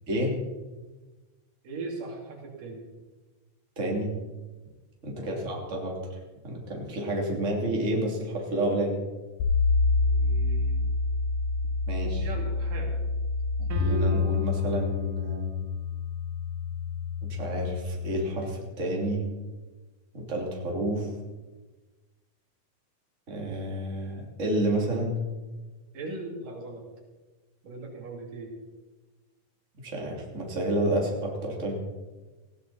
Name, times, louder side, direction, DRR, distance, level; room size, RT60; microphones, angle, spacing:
voice 1, 1.6-2.8 5.1-5.3 10.0-10.9 11.9-13.0 25.9-26.9 27.6-28.6, right 3 dB, 85° right, 0 dB, 4.5 m, -39 dB
voice 2, 3.8-4.1 5.0-6.2 6.4-9.0 11.9-12.3 13.6-15.5 17.2-19.2 20.1-21.1 23.3-25.2 29.8-31.8, right 1 dB, 25° right, -1 dB, 3.0 m, -30 dB
sound 1, 9.4-18.1, left 4 dB, 70° left, 2.8 m, -27 dB
sound 2, 13.7-14.8, right 4 dB, 60° right, 1.4 m, -37 dB
19.0 x 16.0 x 4.2 m, 1.2 s
omnidirectional pair, 3.7 m